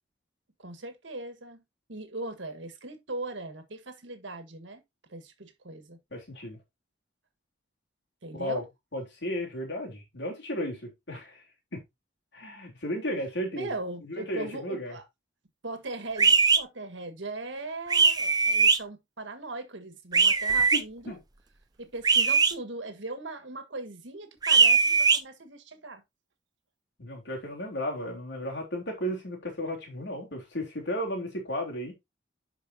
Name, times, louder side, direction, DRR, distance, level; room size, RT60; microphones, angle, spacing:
voice 1, 0.6-1.6 1.9-4.8 5.1-6.0 8.2-8.7 13.5-15.0 15.6-21.2 21.8-26.0, right 2 dB, 75° right, 1.6 m, -39 dB
voice 2, 6.1-6.6 8.3-8.6 8.9-11.4 11.7-11.8 12.3-13.7 14.0-15.0 20.7-21.2 27.0-31.9, equal, 65° left, 3.4 m, -34 dB
sound 1, 16.2-16.6 17.9-18.8 20.1-20.8 22.0-22.5 24.4-25.2, right 5 dB, 20° right, 0.6 m, -20 dB
11.0 x 4.9 x 2.7 m
head